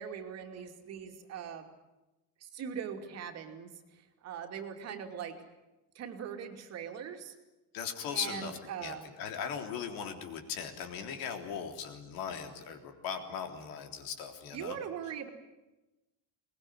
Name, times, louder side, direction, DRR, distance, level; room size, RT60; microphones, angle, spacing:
voice 1, 0.0-1.7 2.4-5.4 5.9-7.3 8.1-9.1 14.5-15.3, right 8 dB, 40° right, 4 dB, 2.6 m, -41 dB
voice 2, 7.7-14.8, left 7 dB, 60° left, 6 dB, 3.6 m, -39 dB
22.5 x 20.5 x 9.8 m, 1.0 s
cardioid pair, 170°, 38 cm